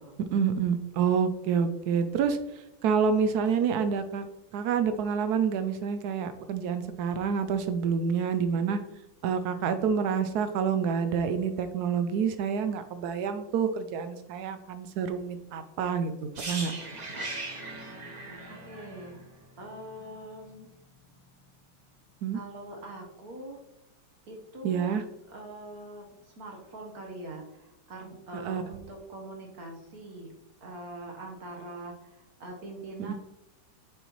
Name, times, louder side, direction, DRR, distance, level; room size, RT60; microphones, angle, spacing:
voice 1, 0.3-4.3 4.5-8.8 9.2-16.1 16.4-16.7 22.2-22.4 24.6-25.0 28.4-28.6 33.1-33.2, right 6 dB, 75° right, 9 dB, 0.9 m, -28 dB
sound 1, 16.3-20.2 20.5-20.7, right 2 dB, 35° right, 0.6 m, -39 dB
voice 2, 18.5-19.2 19.6-20.7 22.3-23.6 24.2-25.0 25.3-30.3 30.6-33.1, right 2 dB, 55° right, 1 dB, 1.4 m, -43 dB
7.2 x 5.4 x 3.0 m, 0.93 s
omnidirectional pair, 2.1 m